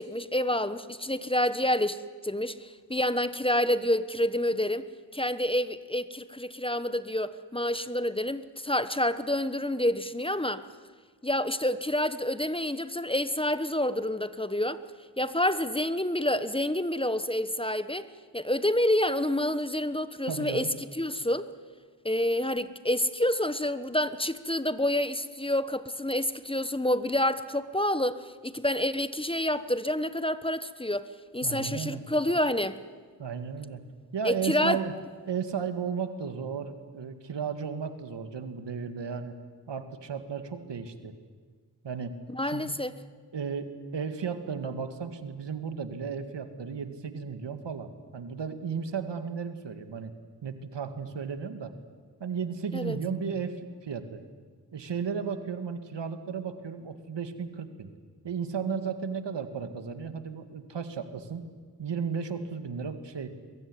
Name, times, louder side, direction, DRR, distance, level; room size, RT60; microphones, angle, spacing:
voice 1, 0.0-10.6 11.2-14.8 15.2-18.1 18.3-20.7 20.9-21.5 22.0-31.1 31.3-32.8 34.2-34.8 42.3-42.9 52.7-53.0, left 1 dB, 15° left, 13 dB, 1.2 m, -28 dB
voice 2, 20.3-20.7 31.4-32.0 33.2-33.8 34.1-34.9 35.3-39.3 39.7-41.1 41.8-42.2 42.4-42.7 43.3-50.1 50.4-51.7 52.2-53.6 53.8-54.2 54.7-57.9 58.2-61.4 61.8-63.3, right 6 dB, 85° right, 9 dB, 2.1 m, -34 dB
23.0 x 22.0 x 9.9 m, 1.5 s
cardioid pair, 50°, 42 cm